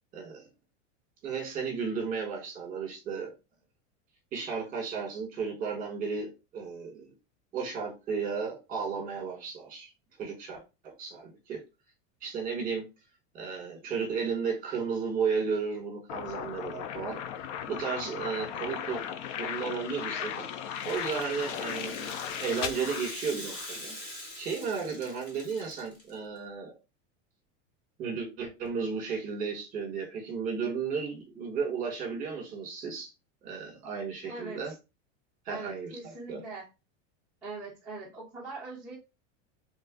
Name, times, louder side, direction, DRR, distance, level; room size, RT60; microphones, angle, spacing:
voice 1, 0.1-0.5 1.2-3.3 4.3-7.1 7.5-9.9 10.2-11.6 12.2-12.8 13.3-17.2 17.7-19.0 19.4-20.5 20.8-24.0 24.4-26.8 28.0-33.1 33.4-34.7 35.4-36.4, right 5 dB, 25° right, 1.3 m, -34 dB
sound 1, 16.1-23.9, left 9 dB, 80° left, 0.6 m, -37 dB
Rattle (instrument), 20.6-26.1, left 1 dB, 30° left, 1.4 m, -44 dB
voice 2, 34.3-34.8 35.5-36.6 37.4-39.0, right 3 dB, 5° right, 0.3 m, -41 dB
3.2 x 2.4 x 3.6 m
supercardioid pair, 170°, 36 cm